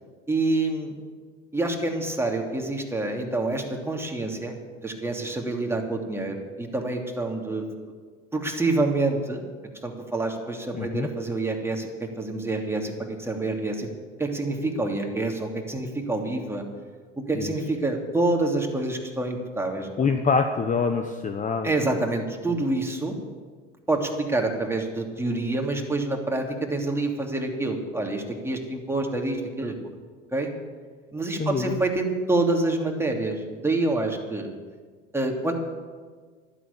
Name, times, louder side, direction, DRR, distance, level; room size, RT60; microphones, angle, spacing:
voice 1, 0.3-0.9 1.5-4.6 4.8-7.6 8.3-9.4 9.8-13.9 14.2-16.6 17.3-20.1 21.6-23.1 23.9-29.8 30.3-30.5 31.1-34.5 35.1-35.5, right 2 dB, 5° right, 1 dB, 2.9 m, -27 dB
voice 2, 10.7-11.1 17.3-17.5 20.0-21.7 31.4-31.8, left 5 dB, 20° left, 7 dB, 1.1 m, -25 dB
12.5 x 12.0 x 8.5 m, 1.5 s
hypercardioid pair, 85°, 35 cm